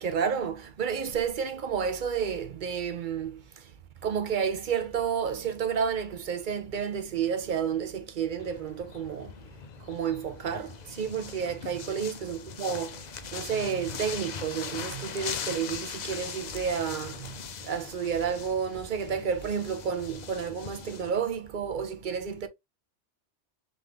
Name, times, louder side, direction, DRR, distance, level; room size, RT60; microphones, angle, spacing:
voice 1, 0.0-3.7 4.0-9.4 9.8-22.5, right 7 dB, 50° right, 0.7 m, -31 dB
sound 1, 8.4-21.1, left 7 dB, 55° left, 0.5 m, -40 dB
3.6 x 3.5 x 3.1 m
omnidirectional pair, 1.2 m